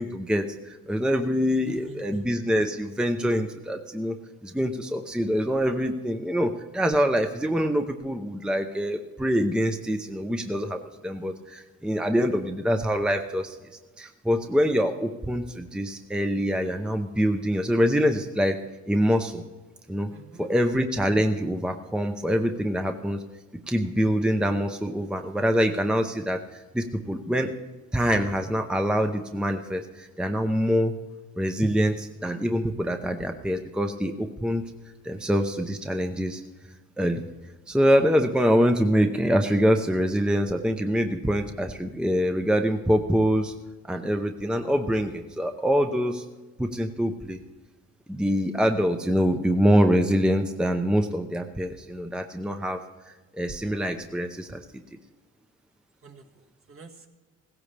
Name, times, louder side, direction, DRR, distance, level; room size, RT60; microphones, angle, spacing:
voice 1, 0.0-4.2 4.4-13.6 14.0-18.6 18.9-19.4 19.9-20.1 20.4-23.2 23.7-26.4 26.7-27.5 27.9-30.9 31.4-34.7 35.0-36.4 37.0-37.2 37.7-43.5 43.9-46.2 46.6-47.4 48.1-52.8 53.4-54.6, equal, 5° right, 6 dB, 0.7 m, -25 dB
voice 2, 1.6-2.3 20.1-20.5 56.0-57.1, right 5 dB, 45° right, 2 dB, 1.7 m, -47 dB
16.5 x 15.5 x 3.3 m, 1.2 s
cardioid pair, 90°, 30 cm